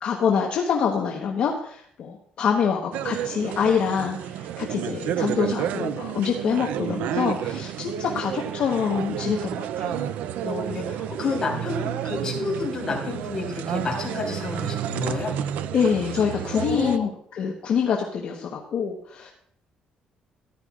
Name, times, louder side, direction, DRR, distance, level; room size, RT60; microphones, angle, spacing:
voice 1, 0.0-10.0 15.7-19.3, left 7 dB, 50° left, 0 dB, 1.1 m, -25 dB
sound 1, 2.9-17.0, right 10 dB, 85° right, 0.5 m, -30 dB
voice 2, 10.4-15.3 16.5-17.1, left 4 dB, 25° left, -2 dB, 3.4 m, -30 dB
14.0 x 11.0 x 2.4 m, 0.65 s
cardioid pair, 180°, 3 cm